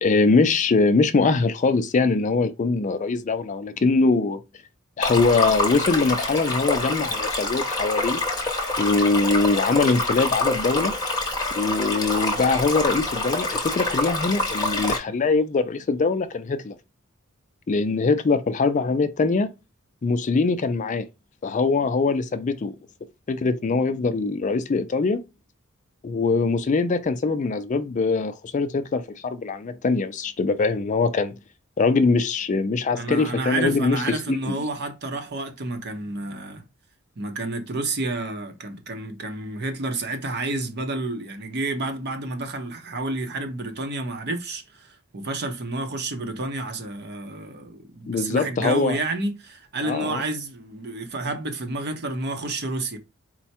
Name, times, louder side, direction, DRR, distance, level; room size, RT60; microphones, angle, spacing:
voice 1, 0.0-4.4 5.0-8.2 8.8-10.9 11.6-16.8 17.7-19.5 20.0-21.1 21.4-22.8 23.3-25.2 26.0-31.4 31.8-34.6 48.1-49.0 49.8-50.2, left 4 dB, 35° left, 0.4 m, -22 dB
Stream, 5.0-15.0, left 2 dB, 20° left, 0.9 m, -26 dB
voice 2, 32.9-36.6 37.2-53.0, right 2 dB, 50° right, 0.8 m, -30 dB
4.5 x 2.1 x 4.2 m
head